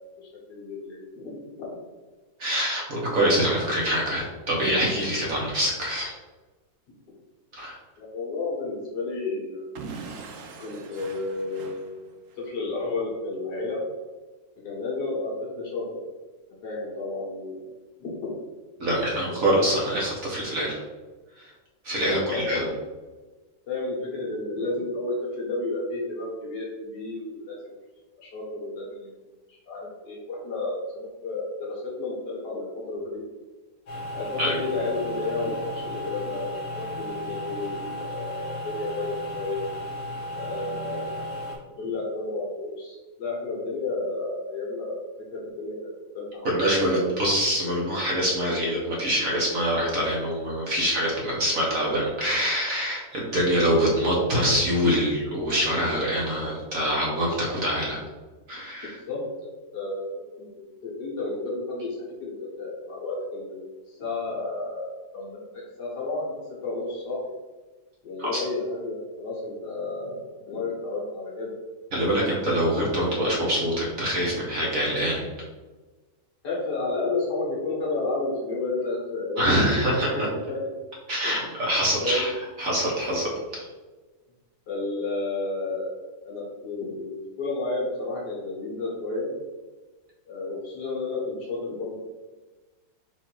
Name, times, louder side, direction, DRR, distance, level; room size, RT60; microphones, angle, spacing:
voice 1, 0.0-1.8 8.0-9.7 10.6-12.0 12.4-13.8 14.6-15.8 16.6-17.6 18.0-18.3 18.8-19.3 22.0-22.7 23.7-27.8 28.2-29.1 29.5-33.2 34.1-39.7 40.3-45.0 45.3-47.0 59.1-60.5 60.8-63.6 63.9-66.4 66.6-67.3 68.0-70.2 70.5-71.6 76.4-80.6 81.2-81.5 82.0-82.3 84.7-85.9 86.2-87.1 87.4-89.3 90.3-92.0, left 3 dB, 65° left, -4 dB, 1.8 m, -32 dB
voice 2, 2.4-6.1 7.5-7.8 18.8-20.8 21.4-21.5 21.8-22.6 34.4-34.6 46.4-58.0 58.5-59.0 68.2-68.4 71.9-75.3 79.4-80.1 81.1-82.3 82.6-83.7, equal, 55° right, -4 dB, 1.2 m, -25 dB
Explosion / Shatter, 9.8-12.5, right 4 dB, 75° right, 0.7 m, -41 dB
sound 1, 33.9-41.6, equal, 45° left, 1.1 m, -34 dB
4.4 x 2.7 x 4.5 m, 1.3 s
omnidirectional pair, 2.0 m